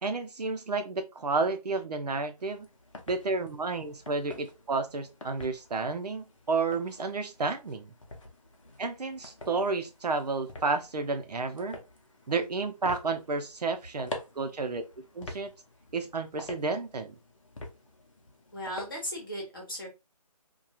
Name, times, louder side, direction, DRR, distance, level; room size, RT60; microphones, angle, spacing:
voice 1, 0.0-2.7 3.1-7.9 8.8-11.8 12.3-14.1 14.4-14.8 15.1-15.5 15.9-17.2, right 3 dB, 80° right, 0.7 m, -31 dB
sound 1, 2.4-19.3, left 2 dB, 50° left, 0.6 m, -47 dB
voice 2, 18.5-19.9, equal, 35° left, 1.0 m, -36 dB
2.4 x 2.3 x 2.8 m
hypercardioid pair, 180°, 20 cm